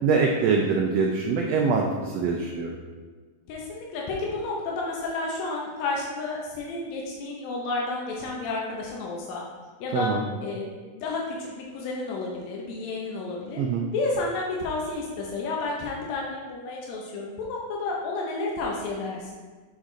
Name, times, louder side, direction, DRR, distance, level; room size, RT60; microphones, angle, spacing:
voice 1, 0.0-2.8 9.9-10.2 13.6-13.9, right 5 dB, 75° right, 0 dB, 1.6 m, -24 dB
voice 2, 3.5-9.4 9.8-10.1 10.4-13.6 13.9-19.4, left 3 dB, 75° left, -2 dB, 2.0 m, -31 dB
6.5 x 4.7 x 3.8 m, 1.4 s
omnidirectional pair, 3.4 m